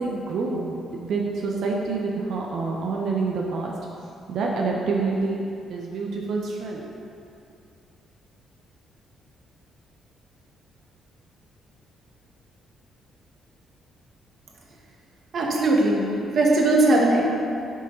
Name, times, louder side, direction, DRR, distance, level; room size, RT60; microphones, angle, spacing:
voice 1, 0.0-3.7 4.3-5.4 5.7-6.9, right 4 dB, 75° right, -1 dB, 0.9 m, -27 dB
voice 2, 15.3-16.1 16.3-17.2, right 2 dB, 55° right, -1 dB, 1.6 m, -19 dB
8.1 x 5.2 x 5.5 m, 2.5 s
cardioid pair, 90°, 0 cm